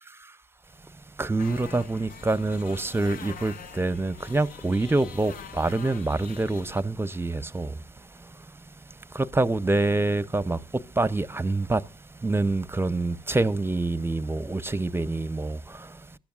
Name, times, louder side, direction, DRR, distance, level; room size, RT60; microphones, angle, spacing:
voice 1, 1.2-8.5 8.9-16.2, right 2 dB, 15° right, 0.8 m, -27 dB
sound 1, 1.4-6.8, left 7 dB, 55° left, 0.7 m, -44 dB
23.0 x 11.5 x 2.4 m
hypercardioid pair, 50°, 17 cm